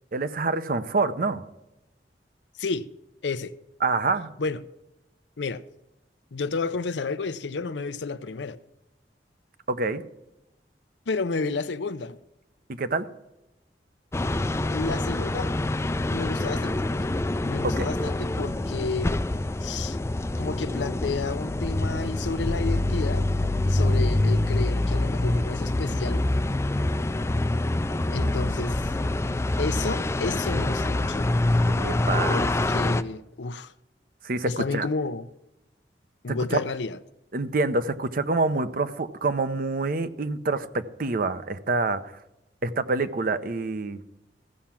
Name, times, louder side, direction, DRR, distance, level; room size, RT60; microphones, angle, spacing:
voice 1, 0.1-1.4 3.8-4.3 9.7-10.0 12.7-13.1 17.6-17.9 28.2-28.3 31.7-32.4 34.2-34.9 36.3-36.6 37.3-42.1 42.6-44.0, right 3 dB, 55° right, 0.7 m, -27 dB
voice 2, 3.2-3.5 4.4-4.6 5.4-5.6 6.3-8.6 11.1-12.2 14.7-15.5 16.1-16.8 17.4-19.2 19.6-20.0 20.4-23.3 23.6-26.3 28.1-28.9 29.6-31.3 32.3-33.7 34.4-35.3 36.2-37.0, left 4 dB, 85° left, 0.6 m, -31 dB
sound 1, 14.1-33.0, left 2 dB, 15° left, 0.4 m, -26 dB
15.0 x 5.8 x 7.4 m
head